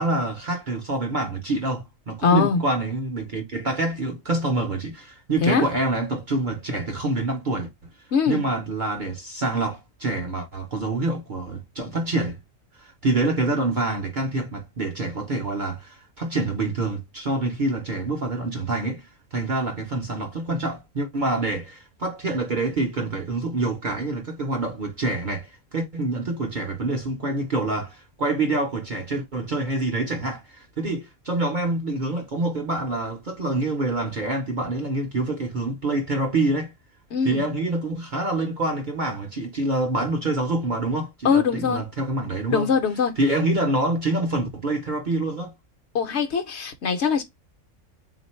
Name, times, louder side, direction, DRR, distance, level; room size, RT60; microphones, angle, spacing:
voice 1, 0.0-7.9 8.3-12.4 12.7-36.7 37.2-42.7 43.2-45.5, right 2 dB, 45° right, 0.7 m, -26 dB
voice 2, 2.2-2.6 5.4-5.7 8.1-8.4 37.1-37.4 41.2-41.8 42.5-43.2 45.9-47.2, left 5 dB, 60° left, 0.9 m, -22 dB
3.7 x 2.5 x 4.2 m
omnidirectional pair, 1.4 m